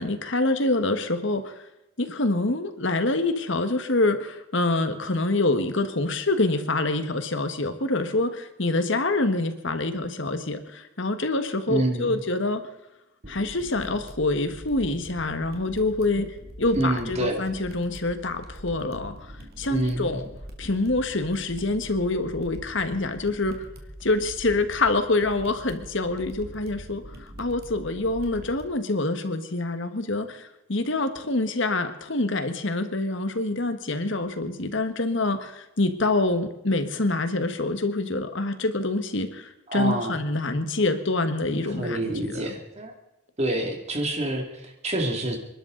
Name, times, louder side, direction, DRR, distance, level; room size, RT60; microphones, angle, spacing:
voice 1, 0.0-1.6 2.0-12.6 13.3-16.3 16.6-19.3 19.6-20.2 20.6-23.7 24.0-42.5, left 2 dB, 60° left, 9 dB, 1.5 m, -26 dB
voice 2, 11.7-12.2 16.2-16.3 16.8-17.4 19.7-20.2 39.7-40.2 41.8-42.9 43.4-45.4, right 1 dB, 30° right, 2 dB, 2.5 m, -27 dB
sound 1, 13.2-28.7, equal, 45° right, 2.4 m, -43 dB
28.5 x 12.5 x 3.9 m, 0.93 s
head